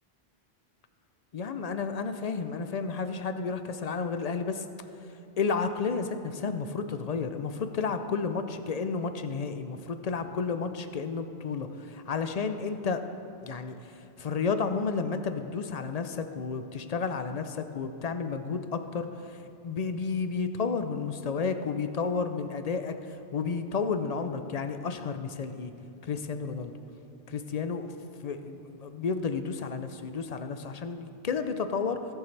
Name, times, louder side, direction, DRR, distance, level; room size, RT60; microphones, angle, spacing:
voice 1, 1.3-4.6 5.4-13.0 13.4-13.8 14.2-25.7 26.0-26.7 27.3-27.9 28.2-32.1, left 5 dB, 50° left, 8 dB, 0.5 m, -32 dB
17.5 x 7.1 x 3.3 m, 2.7 s
omnidirectional pair, 1.0 m